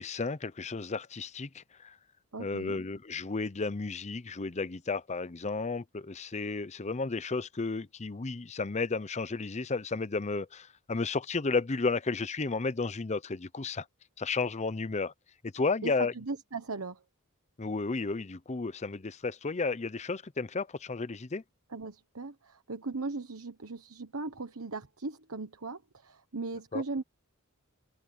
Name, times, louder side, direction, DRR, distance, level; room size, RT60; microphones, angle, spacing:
voice 1, 0.0-2.0 2.4-13.9 14.2-15.1 15.4-16.1 17.6-21.4 26.7-26.8, left 4 dB, 30° left, 0.6 m, -33 dB
voice 2, 2.3-2.8 15.8-17.0 21.7-27.0, right 3 dB, 70° right, 1.2 m, -38 dB
head